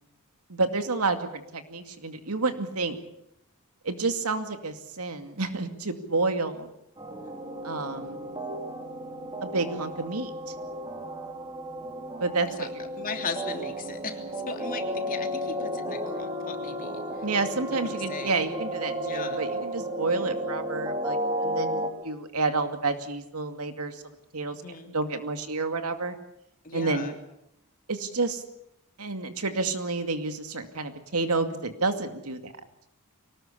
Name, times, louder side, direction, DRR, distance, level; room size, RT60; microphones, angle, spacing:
voice 1, 0.5-3.0 3.8-6.7 7.6-8.2 9.4-10.5 12.2-12.8 17.2-21.2 21.4-24.0 24.3-24.6 24.9-26.2 26.7-27.1 27.9-28.4 29.0-32.5, right 3 dB, 85° right, 7 dB, 2.4 m, -29 dB
sound 1, 7.0-21.9, equal, 20° right, 3.6 m, -33 dB
voice 2, 13.0-17.0 17.7-18.4 19.0-19.4 24.5-24.9 26.6-27.1, left 4 dB, 40° left, 4 dB, 3.2 m, -37 dB
24.0 x 19.0 x 8.5 m, 0.81 s
head